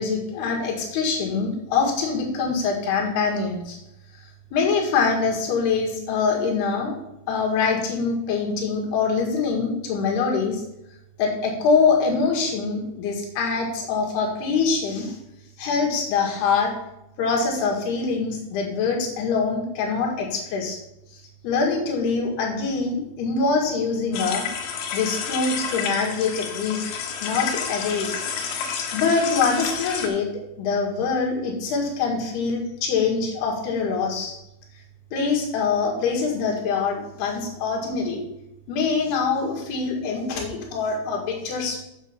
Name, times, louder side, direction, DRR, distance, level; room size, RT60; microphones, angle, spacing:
voice 1, 0.0-3.8 4.5-7.0 7.3-10.6 11.2-15.2 15.6-16.7 17.2-20.8 21.4-24.5 24.9-26.9 27.2-28.2 28.9-30.3 30.6-34.3 35.1-38.2 38.7-41.8, left 5 dB, 70° left, 0 dB, 3.7 m, -24 dB
sound 1, 24.1-30.1, left 7 dB, 85° left, 3.5 m, -30 dB
7.7 x 7.2 x 5.9 m, 0.85 s
omnidirectional pair, 5.0 m